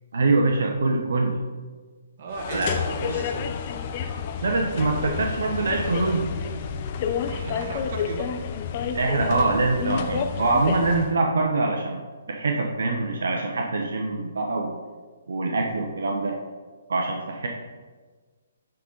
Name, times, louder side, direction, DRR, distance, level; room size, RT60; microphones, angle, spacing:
voice 1, 0.1-1.4 2.5-2.7 4.4-6.3 8.9-12.0 12.3-14.7 15.3-16.4 16.9-17.5, right 3 dB, 75° right, 1 dB, 0.9 m, -24 dB
voice 2, 2.2-3.5 7.2-8.3, right 3 dB, 50° right, 3 dB, 1.1 m, -35 dB
sound 1, 2.3-11.2, left 6 dB, 40° left, 0.6 m, -30 dB
9.8 x 3.9 x 3.9 m, 1.4 s
hypercardioid pair, 145°, 0 cm